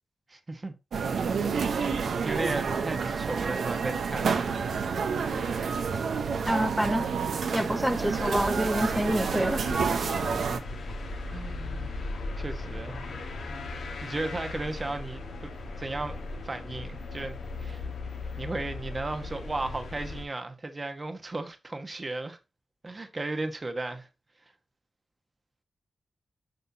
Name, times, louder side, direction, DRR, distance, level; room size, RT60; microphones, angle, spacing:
voice 1, 0.3-0.7 1.8-4.5 10.4-10.6 11.3-11.9 12.4-13.1 14.0-15.5 15.8-16.2 16.4-17.8 18.4-22.4 22.8-24.1, right 2 dB, 40° right, 1.2 m, -35 dB
sound 1, 0.9-10.6, right 5 dB, 75° right, 0.9 m, -29 dB
voice 2, 6.4-7.1 7.5-9.6, equal, 5° right, 0.7 m, -27 dB
sound 2, 7.9-20.2, left 2 dB, 85° left, 1.5 m, -38 dB
7.9 x 5.6 x 2.8 m
supercardioid pair, 45°, 0 cm